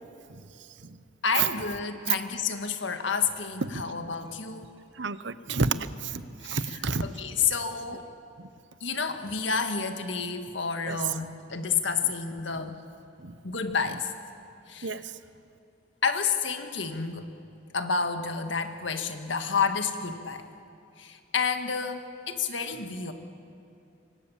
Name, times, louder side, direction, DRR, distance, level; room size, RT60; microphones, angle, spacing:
voice 1, 1.2-4.7 6.4-8.1 8.8-12.8 13.4-14.1 14.7-15.0 16.0-17.3 17.7-20.5 21.0-23.1, left 5 dB, 80° left, 7 dB, 1.9 m, -30 dB
voice 2, 5.0-7.1 8.4-8.5 10.9-11.0 13.2-13.3 14.8-15.1, right 5 dB, 75° right, 14 dB, 0.9 m, -30 dB
26.0 x 24.5 x 7.4 m, 2.6 s
head